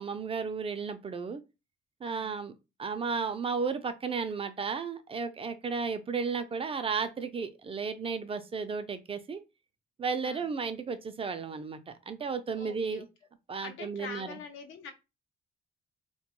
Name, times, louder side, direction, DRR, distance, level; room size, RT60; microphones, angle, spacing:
voice 1, 0.0-1.4 2.0-2.5 2.8-9.4 10.0-13.1 13.5-14.4, right 5 dB, 30° right, 0.3 m, -34 dB
voice 2, 2.0-2.4 10.2-10.5 12.5-13.1 13.6-14.9, left 6 dB, 85° left, 0.6 m, -44 dB
2.2 x 2.2 x 2.9 m
cardioid pair, 90°, 20 cm